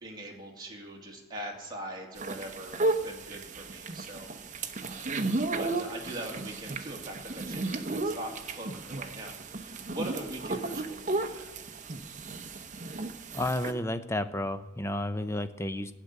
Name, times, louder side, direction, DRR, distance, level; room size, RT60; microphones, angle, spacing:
voice 1, 0.0-4.3 4.8-5.1 5.5-11.6, right 1 dB, 20° right, -1 dB, 2.4 m, -42 dB
sound 1, 2.2-13.7, right 3 dB, 40° right, 0.8 m, -34 dB
voice 2, 13.3-15.9, left 1 dB, 15° left, 11 dB, 0.5 m, -31 dB
15.0 x 6.6 x 9.5 m, 1.0 s
head